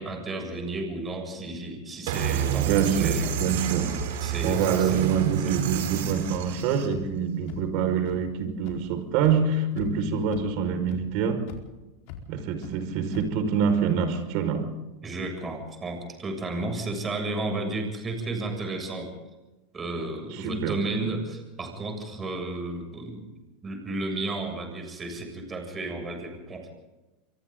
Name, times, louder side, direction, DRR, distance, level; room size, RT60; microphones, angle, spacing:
voice 1, 0.0-3.3 4.2-5.0 5.4-5.9 15.0-19.1 19.7-23.3 23.6-26.7, right 2 dB, 20° right, 3 dB, 7.3 m, -33 dB
sound 1, 2.1-6.9, right 8 dB, 75° right, 4.4 m, -29 dB
voice 2, 2.6-4.0 4.4-11.4 12.3-14.7 20.3-20.8, right 6 dB, 60° right, 7 dB, 5.5 m, -26 dB
sound 2, 3.9-4.1 4.4-4.6 5.1-5.2 5.7-5.8 6.3-6.4 6.9-7.0 7.5-7.6 8.1-8.2 8.7-8.8 9.2-9.3 9.7-10.0 10.3-10.4 10.9-11.0 11.5-11.6 12.1-12.2 12.6-12.7 13.1-13.2, left 14 dB, 65° left, 4.6 m, -39 dB
27.5 x 23.5 x 4.0 m, 1.1 s
supercardioid pair, 115°, 0 cm